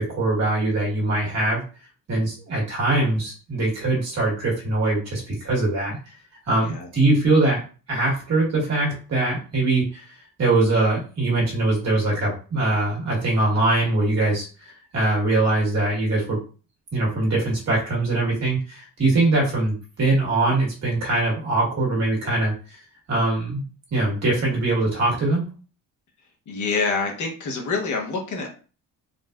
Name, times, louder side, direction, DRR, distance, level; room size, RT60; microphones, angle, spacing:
voice 1, 0.0-1.6 2.1-6.0 6.5-7.6 7.9-10.0 10.4-16.4 16.9-22.8 23.1-23.6 23.9-25.4, right 2 dB, 50° right, -3 dB, 1.6 m, -22 dB
voice 2, 26.5-28.5, left 4 dB, 60° left, 1 dB, 1.0 m, -26 dB
3.9 x 2.5 x 2.2 m, 0.36 s
cardioid pair, 155°, 33 cm